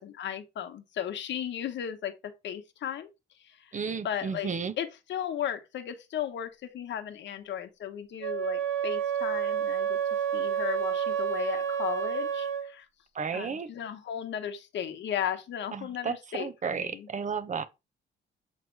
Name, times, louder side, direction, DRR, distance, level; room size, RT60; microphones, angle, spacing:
voice 1, 0.0-3.1 3.4-3.8 4.0-4.5 4.8-10.0 10.3-12.9 13.3-17.1, left 10 dB, 65° left, 1.1 m, -35 dB
voice 2, 3.7-4.7 13.1-13.7 15.7-17.6, right 6 dB, 40° right, 0.9 m, -33 dB
Wind instrument woodwind instrument, 8.2-12.7, right 8 dB, 80° right, 1.2 m, -29 dB
7.2 x 3.3 x 4.6 m
cardioid pair, 90°, 20 cm